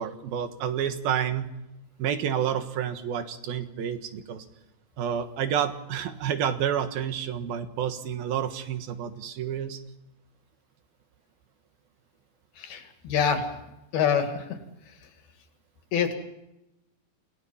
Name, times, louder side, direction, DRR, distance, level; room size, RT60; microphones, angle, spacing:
voice 1, 0.0-1.5 2.0-4.5 5.0-9.8, right 9 dB, 75° right, 9 dB, 3.3 m, -29 dB
voice 2, 12.6-13.4 13.9-14.3 15.9-16.1, left 7 dB, 80° left, 6 dB, 4.1 m, -25 dB
28.5 x 18.5 x 5.7 m, 0.90 s
omnidirectional pair, 4.3 m